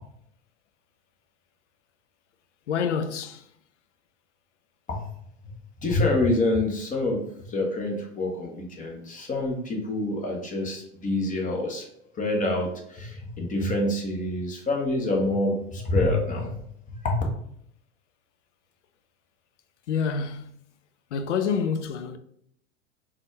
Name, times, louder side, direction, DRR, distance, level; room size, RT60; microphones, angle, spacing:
voice 1, 2.7-3.4 19.9-20.5 21.1-22.2, left 6 dB, 75° left, 0.5 m, -27 dB
voice 2, 5.8-7.2 7.5-11.9 12.2-16.6 17.0-17.2, left 2 dB, 20° left, 1.0 m, -26 dB
4.1 x 2.3 x 3.1 m
figure-of-eight pair, 85°, 36 cm